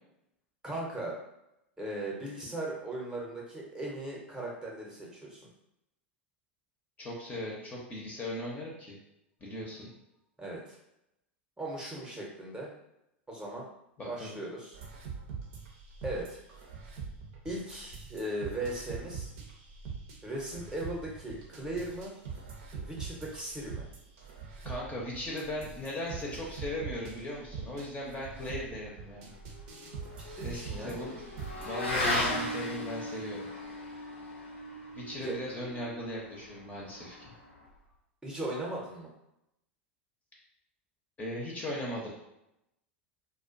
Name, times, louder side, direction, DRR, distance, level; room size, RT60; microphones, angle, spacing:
voice 1, 0.6-1.2 1.8-5.4 10.4-10.8 11.6-12.7 13.3-13.7 14.0-14.8 16.0-16.4 17.4-19.3 20.2-22.1 22.7-23.8 30.4-30.9 35.2-35.4 38.2-39.1, right 1 dB, 10° right, -3 dB, 0.7 m, -38 dB
voice 2, 7.0-9.0 9.4-9.9 14.0-14.4 24.6-29.3 30.4-31.1 31.6-33.5 34.9-37.3 41.2-42.2, left 1 dB, 20° left, -3 dB, 0.7 m, -38 dB
sound 1, 14.7-32.1, right 5 dB, 60° right, 0.6 m, -43 dB
Motorcycle / Accelerating revving vroom, 29.0-37.8, left 1 dB, 80° left, 0.7 m, -37 dB
2.4 x 2.2 x 2.5 m, 0.85 s
hypercardioid pair, 90°, 6 cm